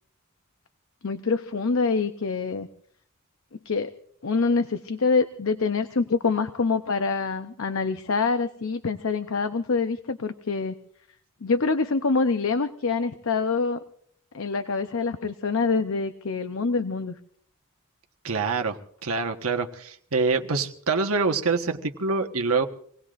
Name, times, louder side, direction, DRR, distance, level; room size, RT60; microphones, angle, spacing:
voice 1, 1.0-2.7 3.5-3.9 4.2-10.7 11.4-13.8 14.3-17.2, left 4 dB, 70° left, 9 dB, 0.7 m, -25 dB
voice 2, 18.2-22.7, right 4 dB, 85° right, 5 dB, 1.3 m, -25 dB
27.0 x 18.5 x 2.5 m, 0.62 s
head